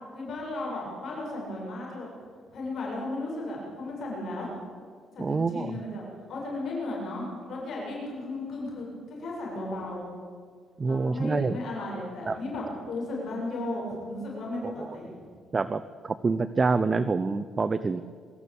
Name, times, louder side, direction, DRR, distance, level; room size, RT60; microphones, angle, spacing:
voice 1, 0.1-2.1 2.5-4.5 5.1-10.1 10.8-15.2, left 2 dB, 60° left, -3 dB, 7.5 m, -35 dB
voice 2, 5.2-5.7 10.8-11.6 12.3-12.4 14.6-14.9 15.5-18.0, right 4 dB, 30° right, 13 dB, 0.7 m, -27 dB
23.5 x 14.0 x 8.5 m, 2.1 s
cardioid pair, 100°, 0 cm